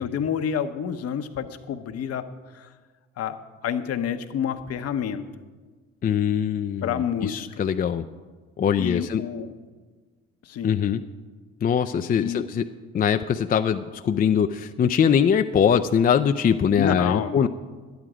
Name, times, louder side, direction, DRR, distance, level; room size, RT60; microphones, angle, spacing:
voice 1, 0.0-2.3 2.5-2.7 3.2-5.2 6.8-7.6 8.8-9.5 10.4-10.8 12.2-12.5 16.8-17.5, left 8 dB, 55° left, 10 dB, 0.9 m, -29 dB
voice 2, 6.0-8.0 8.6-9.2 10.6-11.0 11.6-12.7 12.9-17.5, left 7 dB, 30° left, 8 dB, 0.4 m, -22 dB
11.0 x 9.3 x 4.9 m, 1.4 s
supercardioid pair, 65°, 29 cm